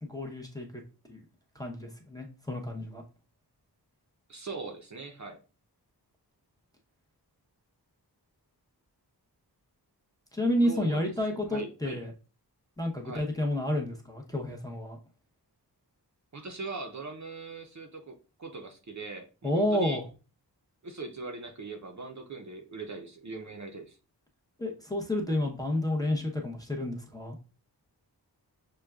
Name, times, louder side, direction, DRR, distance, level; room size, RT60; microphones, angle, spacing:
voice 1, 0.0-0.8 1.1-1.2 1.5-3.0 10.3-12.1 12.8-15.0 19.4-20.0 24.6-27.4, left 1 dB, 10° left, 1 dB, 0.7 m, -30 dB
voice 2, 4.3-5.4 10.6-11.0 11.3-12.0 13.0-13.3 16.3-20.0 20.8-24.0, right 3 dB, 45° right, 3 dB, 0.6 m, -40 dB
6.3 x 2.2 x 2.3 m, 0.34 s
wide cardioid pair, 80°, 40 cm